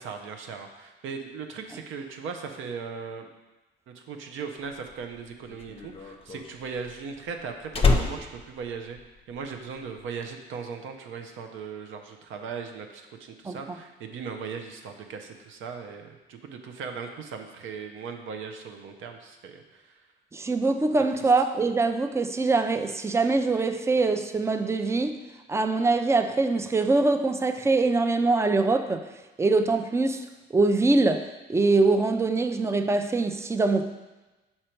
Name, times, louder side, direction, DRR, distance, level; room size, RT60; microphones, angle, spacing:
voice 1, 0.0-3.3 3.9-9.0 9.3-20.0, right 5 dB, 80° right, 4 dB, 0.7 m, -38 dB
Slam, 4.8-9.5 9.8-10.2, left 4 dB, 30° left, 0.6 m, -27 dB
voice 2, 20.3-25.2 25.5-29.0 29.4-30.2 30.5-33.9, right 3 dB, 15° right, 8 dB, 0.4 m, -23 dB
5.1 x 4.3 x 4.5 m, 1.1 s
cardioid pair, 90°, 20 cm